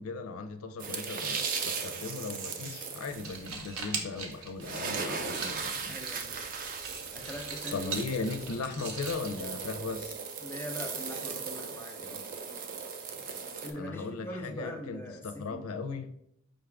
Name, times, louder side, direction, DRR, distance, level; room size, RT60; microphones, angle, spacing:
voice 1, 0.0-6.0 7.7-10.2 13.7-16.1, left 4 dB, 80° left, 7 dB, 0.5 m, -37 dB
sound 1, 0.8-3.5 4.3-4.4 4.6-13.7, right 5 dB, 40° right, 0.4 m, -37 dB
sound 2, 3.1-10.1, right 4 dB, 90° right, 0.8 m, -41 dB
voice 2, 5.9-6.3 7.1-8.0 10.4-12.3 13.6-15.7, left 1 dB, 10° left, 1 dB, 0.6 m, -42 dB
5.1 x 2.4 x 3.4 m, 0.76 s
head